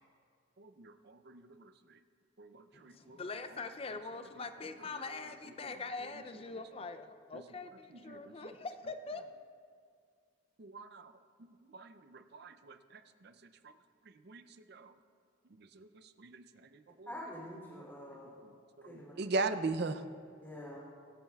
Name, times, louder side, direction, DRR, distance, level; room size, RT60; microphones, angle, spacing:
voice 1, 0.6-1.7 2.4-3.2 5.6-5.7 7.3-7.4 8.1-8.5 10.6-11.1 11.4-13.3 13.6-13.7 14.3-14.4 14.7-14.9 15.6-16.4 16.7-17.1 18.4-18.5 18.8-20.0, right 3 dB, 50° right, 10 dB, 0.5 m, -40 dB
voice 2, 2.7-9.5, left 3 dB, 25° left, 9 dB, 0.4 m, -43 dB
voice 3, 17.1-18.4 18.8-19.1 20.4-20.8, equal, 10° left, -6 dB, 2.9 m, -46 dB
24.0 x 8.7 x 2.3 m, 2.2 s
head